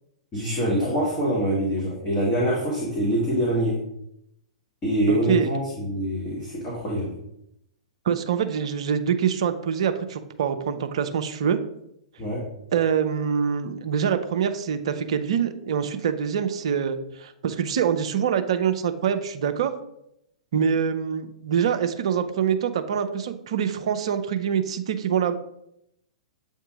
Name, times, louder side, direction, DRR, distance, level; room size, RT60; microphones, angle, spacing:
voice 1, 0.3-3.7 4.8-7.1 12.2-12.4, equal, 20° left, -5 dB, 1.6 m, -25 dB
voice 2, 5.1-5.5 8.1-11.6 12.7-19.7 20.5-25.3, right 7 dB, 55° right, 8 dB, 0.5 m, -25 dB
7.7 x 2.7 x 4.9 m, 0.79 s
figure-of-eight pair, 105°, 4 cm